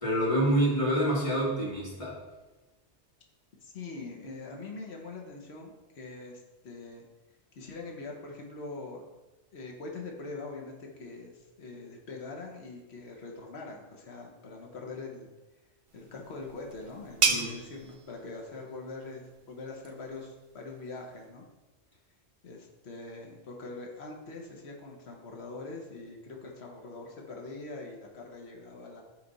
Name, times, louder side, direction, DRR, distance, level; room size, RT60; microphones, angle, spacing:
voice 1, 0.0-2.2 17.3-17.5, right 1 dB, 30° left, -6 dB, 2.0 m, -27 dB
voice 2, 3.6-7.0 7.5-9.1 9.5-15.3 15.9-21.4 22.4-29.0, left 3 dB, 70° left, 0 dB, 1.3 m, -43 dB
sound 1, 15.9-21.3, right 5 dB, 45° right, 0.4 m, -35 dB
10.0 x 3.4 x 4.0 m, 1.1 s
omnidirectional pair, 1.2 m